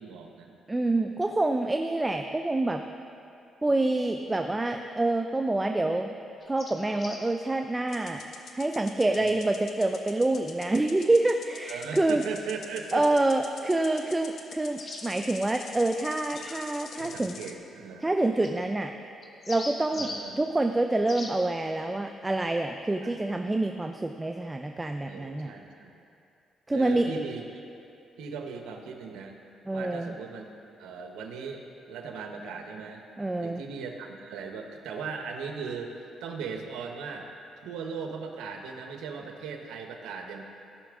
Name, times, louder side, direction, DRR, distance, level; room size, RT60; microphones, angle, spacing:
voice 1, 0.0-0.6 9.1-9.3 11.7-13.1 17.0-18.1 19.9-20.4 23.0-23.2 25.1-26.0 26.7-27.6 28.2-29.3 29.7-33.0 33.4-37.3 37.6-40.4, right 5 dB, 90° right, 3 dB, 1.0 m, -38 dB
voice 2, 0.7-2.8 3.6-6.1 6.5-8.2 8.5-12.2 12.9-17.3 18.0-18.9 19.5-20.1 20.3-25.5 26.7-27.1 29.7-30.1 33.2-33.6, right 2 dB, 15° right, 5 dB, 0.4 m, -27 dB
sound 1, 6.4-7.3 10.4-10.5 14.8-15.0 16.3-16.6 18.4-18.5 19.2-20.2 21.1-21.3, left 2 dB, 40° left, 1.3 m, -40 dB
sound 2, 7.9-17.6, left 6 dB, 65° left, 0.7 m, -46 dB
17.0 x 5.8 x 3.7 m, 2.7 s
cardioid pair, 90°, 0 cm